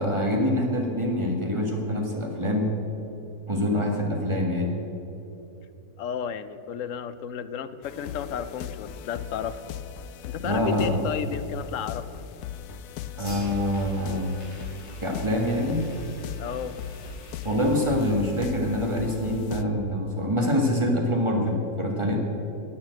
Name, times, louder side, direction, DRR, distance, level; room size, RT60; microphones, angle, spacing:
voice 1, 0.0-2.7 3.5-4.7 10.4-11.0 13.2-14.3 15.0-15.8 17.4-22.2, left 1 dB, 20° right, 0 dB, 1.7 m, -25 dB
voice 2, 6.0-9.7 10.3-12.1 16.4-16.8, left 8 dB, 65° left, 13 dB, 0.8 m, -33 dB
sound 1, 7.8-19.6, left 9 dB, 90° left, 1.1 m, -39 dB
Fire, 12.5-18.4, right 1 dB, 45° left, 4.0 m, -45 dB
11.0 x 8.8 x 7.8 m, 2.8 s
omnidirectional pair, 1.6 m